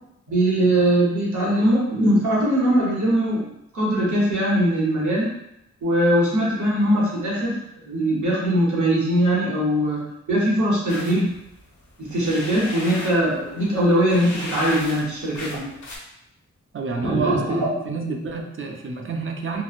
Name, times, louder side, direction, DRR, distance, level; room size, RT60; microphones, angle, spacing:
voice 1, 0.3-3.5 3.7-5.3 5.8-10.0 10.3-11.3 12.0-15.7 17.0-17.7, right 1 dB, 80° right, -5 dB, 0.9 m, -21 dB
sound 1, 10.9-16.0, left 1 dB, 80° left, 0.6 m, -36 dB
voice 2, 16.7-19.6, right 4 dB, 45° right, 2 dB, 0.4 m, -28 dB
2.9 x 2.0 x 2.4 m, 0.81 s
wide cardioid pair, 80°, 29 cm